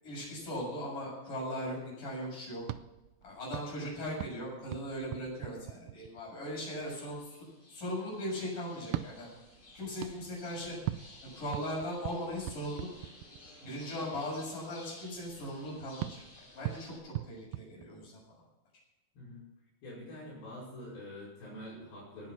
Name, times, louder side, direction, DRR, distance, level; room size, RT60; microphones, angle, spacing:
voice 1, 0.0-2.6 3.2-7.2 7.7-9.3 9.8-10.8 11.3-12.9 13.6-18.2, equal, 60° left, -4 dB, 8.6 m, -38 dB
sound 1, 2.6-6.4 8.8-13.7 16.0-18.4, right 15 dB, 80° right, 2.0 m, -42 dB
sound 2, 6.8-17.0, left 1 dB, 35° left, 5.3 m, -55 dB
voice 2, 19.8-22.3, left 1 dB, 85° left, -7 dB, 7.0 m, -46 dB
19.0 x 9.2 x 6.1 m, 1.0 s
omnidirectional pair, 4.2 m